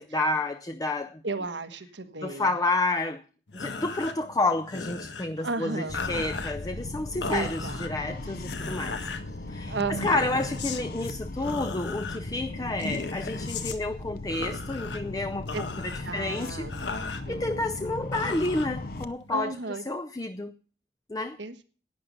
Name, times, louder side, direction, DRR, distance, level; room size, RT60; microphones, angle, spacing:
voice 1, 0.0-1.2 2.2-3.2 3.5-9.0 9.5-16.7 16.9-20.5 21.1-21.4, left 2 dB, 20° left, 0.5 m, -30 dB
voice 2, 1.2-2.5 5.4-6.0 7.3-7.8 9.7-10.3 15.5-15.6 16.0-16.7 17.3-17.6 19.3-19.8 21.4-21.6, right 3 dB, 85° right, 1.3 m, -33 dB
sound 1, 3.5-19.4, left 4 dB, 80° left, 1.4 m, -38 dB
sound 2, 5.9-19.1, left 2 dB, 55° left, 0.8 m, -37 dB
11.5 x 9.4 x 5.3 m
head